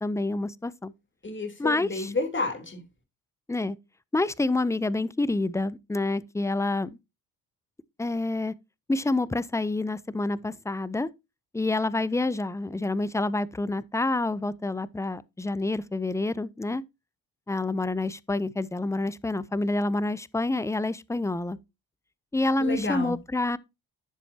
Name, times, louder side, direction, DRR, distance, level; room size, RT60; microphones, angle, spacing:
voice 1, 0.0-0.9 1.6-2.1 3.5-3.8 4.1-7.0 8.0-8.5 8.9-11.1 11.5-16.8 17.5-21.6 22.3-23.6, left 2 dB, 5° left, 0.6 m, -28 dB
voice 2, 1.2-2.8 22.6-23.1, left 2 dB, 25° left, 3.5 m, -30 dB
10.5 x 7.1 x 2.8 m
supercardioid pair, 65°, 45 cm